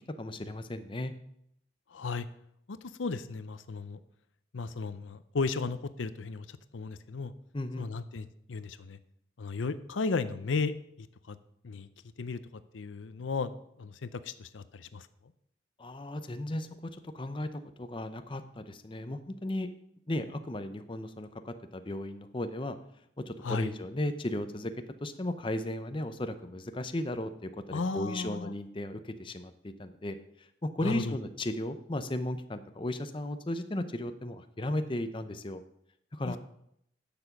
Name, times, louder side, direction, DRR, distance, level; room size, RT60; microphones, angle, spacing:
voice 1, 0.2-1.1 7.5-7.8 15.8-19.7 20.1-22.8 23.2-35.6 36.1-36.4, left 1 dB, 25° left, 9 dB, 0.7 m, -35 dB
voice 2, 1.9-2.3 2.7-4.0 4.5-7.3 7.8-9.0 9.4-11.4 11.6-11.9 12.2-12.4 12.7-15.1 23.4-23.7 27.7-28.5 30.8-31.2 36.2-36.4, left 4 dB, 85° left, 13 dB, 0.6 m, -35 dB
10.5 x 7.0 x 5.9 m, 0.74 s
head